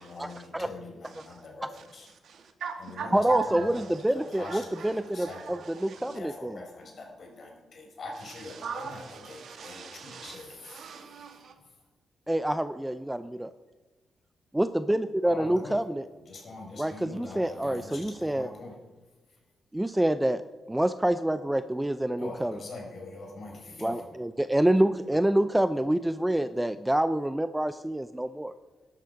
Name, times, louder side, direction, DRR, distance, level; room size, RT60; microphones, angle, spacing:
voice 1, 0.0-2.1 2.8-5.6 6.0-10.9 15.2-15.8 16.3-18.8 22.2-24.1, left 3 dB, 55° left, 1 dB, 4.7 m, -43 dB
voice 2, 2.2-3.9 4.3-6.2 8.5-11.5, right 7 dB, 70° right, 6 dB, 2.0 m, -40 dB
voice 3, 3.1-6.6 12.3-13.5 14.5-16.0 16.8-18.5 19.7-20.4 20.7-22.5 23.8-28.5, right 1 dB, 10° right, 13 dB, 0.5 m, -27 dB
12.5 x 12.0 x 5.4 m, 1.3 s
cardioid pair, 90°, 0 cm